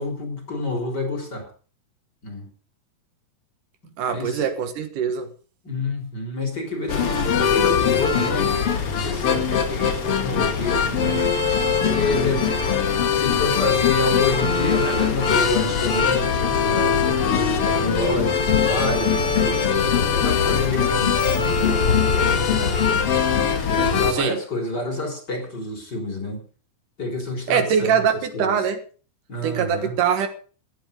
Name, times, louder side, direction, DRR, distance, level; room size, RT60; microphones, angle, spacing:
voice 1, 0.0-1.5 2.2-2.5 4.1-4.4 5.6-11.2 11.8-12.6 13.1-17.0 17.3-23.2 23.7-26.4 27.0-28.1 28.3-28.6 29.3-29.9, left 2 dB, 30° left, 4.2 m, -28 dB
voice 2, 4.0-5.3 24.1-24.4 27.5-28.8 29.4-30.3, right 7 dB, 70° right, 2.9 m, -22 dB
sound 1, 6.9-24.1, left 6 dB, 45° left, 2.4 m, -21 dB
16.0 x 11.5 x 5.2 m
omnidirectional pair, 3.9 m